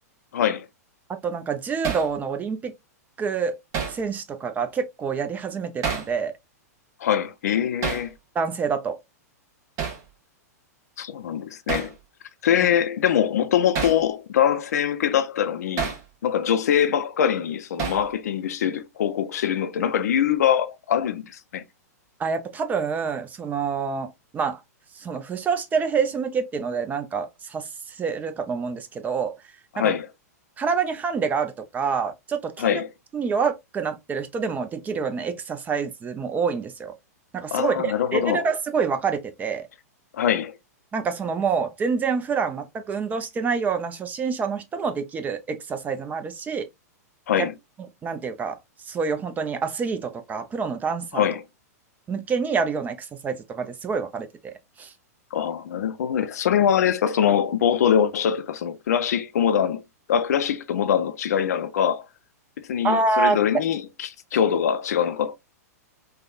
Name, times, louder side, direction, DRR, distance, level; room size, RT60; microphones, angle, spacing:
voice 1, 0.3-0.7 7.0-8.1 11.0-11.9 12.4-15.9 16.2-21.6 29.7-30.1 32.6-32.9 37.5-38.4 40.1-40.6 47.3-47.5 51.1-51.4 55.3-59.8 60.1-62.1 62.6-65.3, left 9 dB, 70° left, 0.5 m, -23 dB
voice 2, 1.2-2.7 3.2-3.6 3.9-6.3 8.3-9.0 12.6-12.7 22.2-24.6 25.0-29.3 29.8-29.9 30.6-32.8 33.1-36.9 37.3-39.7 40.9-46.7 47.4-47.5 48.0-48.6 48.8-51.2 52.1-54.9 62.8-63.4, right 5 dB, 20° right, 0.5 m, -27 dB
Hammer, 1.8-2.1 3.7-4.0 5.8-6.1 7.8-8.1 9.8-10.0 11.7-11.9 13.7-14.0 15.8-16.0 17.8-18.1, right 6 dB, 35° right, 0.9 m, -28 dB
3.4 x 2.1 x 2.4 m
hypercardioid pair, 115°, 9 cm